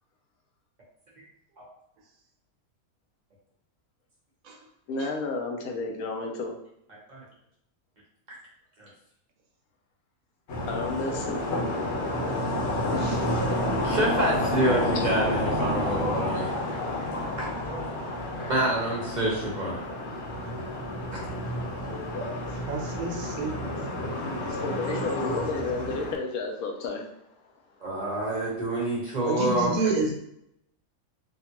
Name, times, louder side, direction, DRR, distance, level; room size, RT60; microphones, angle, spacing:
voice 1, 4.9-6.6 10.7-11.8 12.8-13.2 24.6-27.4, left 3 dB, 90° left, 2 dB, 1.1 m, -32 dB
sound 1, 10.5-26.1, left 1 dB, 55° left, 1.0 m, -30 dB
voice 2, 13.8-16.5 17.1-17.8 18.5-19.8 21.1-21.2 27.8-29.7, right 1 dB, 35° right, -4 dB, 0.8 m, -27 dB
voice 3, 22.5-24.6 29.2-30.2, right 3 dB, 75° right, 1 dB, 1.1 m, -31 dB
3.5 x 2.3 x 2.8 m, 0.76 s
omnidirectional pair, 1.5 m